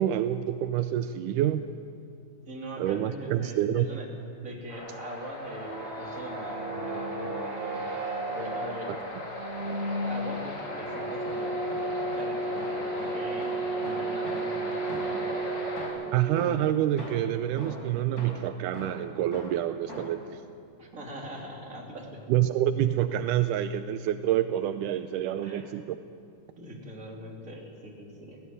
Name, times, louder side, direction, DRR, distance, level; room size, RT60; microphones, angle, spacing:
voice 1, 0.0-1.6 2.8-3.9 16.1-20.2 22.3-26.0, right 11 dB, 85° right, 10 dB, 2.2 m, -27 dB
voice 2, 2.5-4.0 4.4-7.9 8.3-8.9 10.0-13.5 13.8-15.5 20.8-22.2 25.4-25.8 26.6-28.4, right 1 dB, 25° right, -2 dB, 3.4 m, -41 dB
sound 1, 4.7-15.9, left 1 dB, 40° left, 4.4 m, -38 dB
sound 2, 5.5-16.7, right 2 dB, 45° right, 0.7 m, -34 dB
sound 3, 9.4-10.5 10.9-15.4 15.8-20.3, equal, 25° left, 5.4 m, -43 dB
18.0 x 16.5 x 9.5 m, 2.3 s
omnidirectional pair, 3.7 m